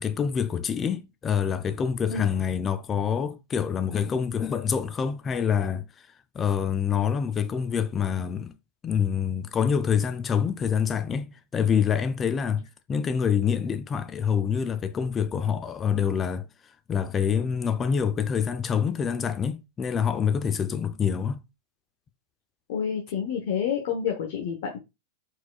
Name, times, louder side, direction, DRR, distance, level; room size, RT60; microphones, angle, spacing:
voice 1, 0.0-5.8 6.3-8.5 8.8-16.5 16.9-21.4, left 7 dB, 25° left, 0.5 m, -26 dB
voice 2, 22.7-24.8, left 7 dB, 60° left, 0.9 m, -29 dB
4.6 x 4.0 x 2.3 m
hypercardioid pair, 100°, 0 cm